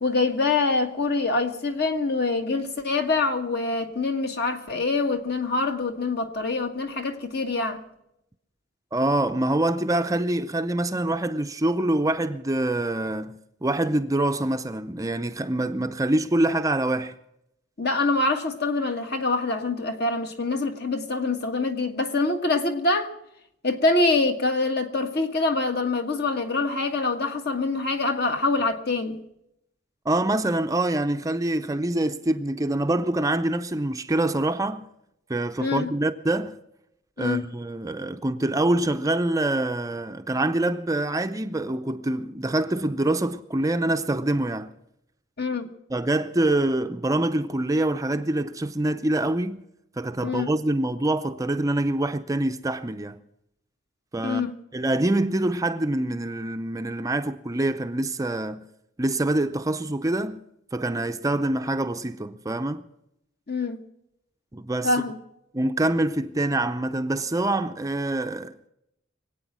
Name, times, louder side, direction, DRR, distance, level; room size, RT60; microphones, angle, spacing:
voice 1, 0.0-7.8 17.8-23.1 23.6-29.2 35.6-35.9 37.2-37.4 45.4-45.7 50.2-50.5 54.2-54.5 63.5-63.8 64.8-65.2, left 3 dB, 55° left, 1.6 m, -25 dB
voice 2, 8.9-17.1 30.1-34.9 35.3-36.6 37.2-44.7 45.9-49.6 50.0-53.2 54.1-58.7 59.0-60.4 60.7-62.8 64.5-65.0 65.5-68.6, right 1 dB, 15° right, 0.5 m, -25 dB
24.0 x 8.8 x 6.1 m
head